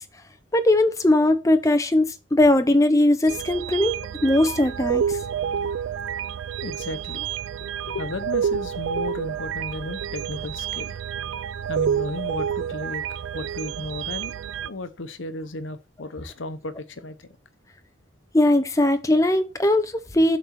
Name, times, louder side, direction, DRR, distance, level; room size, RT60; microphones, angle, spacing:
voice 1, 0.5-3.9 4.2-5.2 18.3-20.4, left 1 dB, 15° left, 0.6 m, -19 dB
sound 1, 3.3-14.7, right 8 dB, 75° right, 0.3 m, -29 dB
voice 2, 6.6-7.4 7.8-11.0 11.7-17.3, left 2 dB, 75° left, 0.8 m, -34 dB
7.7 x 4.1 x 5.8 m
head